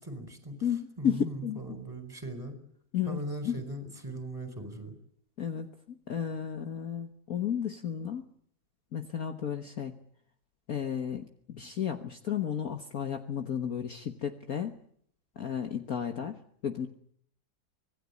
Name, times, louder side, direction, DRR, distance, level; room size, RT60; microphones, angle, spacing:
voice 1, 0.0-0.6 1.0-2.6 3.1-4.9, right 1 dB, 10° right, 8 dB, 4.7 m, -39 dB
voice 2, 0.6-1.8 2.9-3.6 5.4-8.2 8.9-10.0 10.7-14.8 15.4-16.4 16.6-16.9, left 8 dB, 50° left, 6 dB, 1.6 m, -33 dB
25.5 x 19.0 x 8.5 m, 0.65 s
omnidirectional pair, 2.1 m